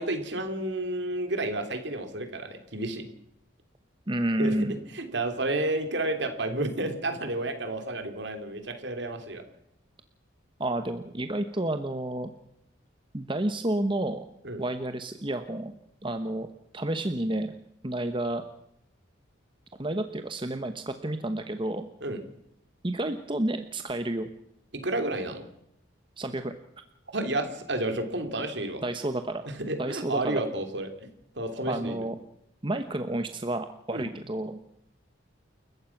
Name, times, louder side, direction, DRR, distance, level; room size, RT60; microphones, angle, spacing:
voice 1, 0.0-3.1 4.4-4.5 4.9-9.4 14.4-14.6 22.0-22.2 24.7-25.4 27.1-28.8 29.5-30.9 31.3-32.0 33.9-34.1, right 2 dB, 60° right, 7 dB, 3.2 m, -31 dB
voice 2, 4.1-4.7 10.6-12.3 13.1-14.2 14.6-15.7 16.0-16.5 16.7-17.5 17.8-18.4 19.8-21.9 22.8-24.3 26.2-26.5 28.8-29.4 29.8-30.4 31.7-32.1 32.6-34.6, right 1 dB, 25° right, 8 dB, 1.0 m, -30 dB
29.5 x 15.0 x 6.0 m, 0.81 s
head